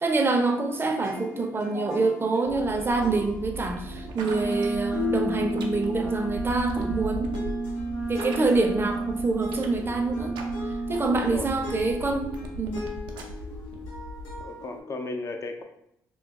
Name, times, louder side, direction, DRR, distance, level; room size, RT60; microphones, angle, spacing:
voice 1, 0.0-7.4 8.1-10.3 10.9-12.8, right 3 dB, 30° right, 4 dB, 0.6 m, -26 dB
sound 1, 0.9-7.0 7.3-14.8, left 6 dB, 90° left, 0.9 m, -39 dB
sound 2, 2.5-14.4, right 2 dB, 75° right, 0.5 m, -39 dB
Wind instrument woodwind instrument, 4.2-11.0, right 3 dB, 75° left, 1.2 m, -31 dB
voice 2, 11.1-11.5 14.4-15.6, left 3 dB, 40° left, 4 dB, 0.5 m, -35 dB
3.0 x 2.0 x 3.5 m, 0.76 s
supercardioid pair, 65°, 8 cm